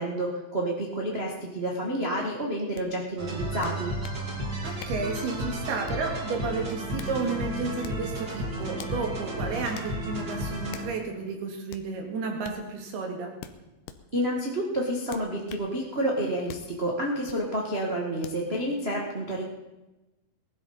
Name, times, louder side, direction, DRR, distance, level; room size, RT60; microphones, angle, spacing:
voice 1, 0.0-3.9 14.1-19.4, right 1 dB, 60° right, -2 dB, 0.6 m, -29 dB
sound 1, 2.8-2.9 3.6-4.2 4.8-5.1 5.9-6.2 6.7-7.2 7.8-8.1 8.8-9.0 9.8-9.9 10.7-11.0 11.7-11.9 12.4-12.6 13.4-14.0 15.1-15.7 16.5-16.7 17.3-17.4 18.2-18.4, left 10 dB, 75° left, 2.2 m, -44 dB
sound 2, 3.2-11.1, right 1 dB, 40° right, 1.5 m, -33 dB
voice 2, 4.6-13.3, right 4 dB, 85° right, 2 dB, 4.1 m, -32 dB
19.5 x 12.5 x 4.2 m, 1.0 s
omnidirectional pair, 4.4 m